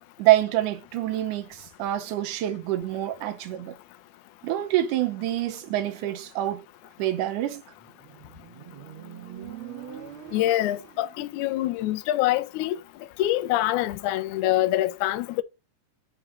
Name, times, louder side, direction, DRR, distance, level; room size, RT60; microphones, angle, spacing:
voice 1, 0.2-3.8 4.4-6.7 7.0-7.6, right 14 dB, 70° right, 2.3 m, -26 dB
Motorcycle, 7.8-11.3, right 9 dB, 50° right, 1.8 m, -43 dB
voice 2, 10.3-12.8 13.2-15.4, left 14 dB, 80° left, 1.8 m, -25 dB
8.9 x 3.2 x 6.2 m
omnidirectional pair, 4.2 m